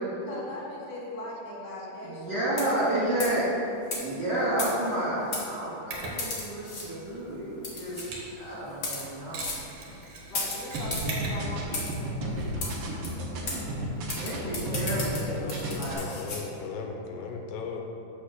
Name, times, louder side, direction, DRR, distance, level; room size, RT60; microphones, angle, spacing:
voice 1, 0.2-3.4 10.3-12.9 14.1-15.6 15.9-16.2, left 1 dB, 40° left, -5 dB, 2.1 m, -40 dB
voice 2, 2.0-3.5 4.0-8.0 8.3-9.5 14.1-16.0, right 1 dB, 40° right, -11 dB, 1.8 m, -31 dB
sound 1, 2.5-2.9 3.2-3.4 3.9-4.0 4.6-5.0 5.3-5.5 6.2-6.9 7.6-8.1 8.7-9.1 9.4-9.6 10.3-11.1 11.7-12.0 12.6-12.7 13.0-13.1 13.5-13.6 14.1-16.4, left 3 dB, 60° left, 1.2 m, -34 dB
Mechanisms, 5.9-15.8, right 2 dB, 55° right, 1.6 m, -43 dB
sound 2, 10.7-15.2 15.5-15.9, right 1 dB, 80° right, 1.2 m, -33 dB
voice 3, 15.2-17.8, left 5 dB, 80° left, 2 dB, 2.4 m, -38 dB
6.7 x 5.9 x 6.4 m, 2.9 s
omnidirectional pair, 4.2 m